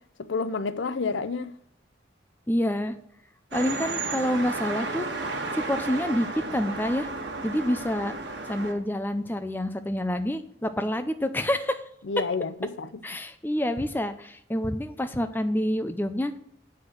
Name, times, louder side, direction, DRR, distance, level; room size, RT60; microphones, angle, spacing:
voice 1, 0.2-1.5 12.1-13.0, left 4 dB, 85° left, 0.5 m, -29 dB
voice 2, 2.5-3.0 3.5-5.1 5.5-7.1 7.4-8.1 8.5-11.8 13.0-16.4, left 1 dB, 10° left, 0.5 m, -27 dB
sound 1, 3.5-8.7, right 3 dB, 70° right, 1.5 m, -33 dB
7.9 x 5.7 x 6.4 m
head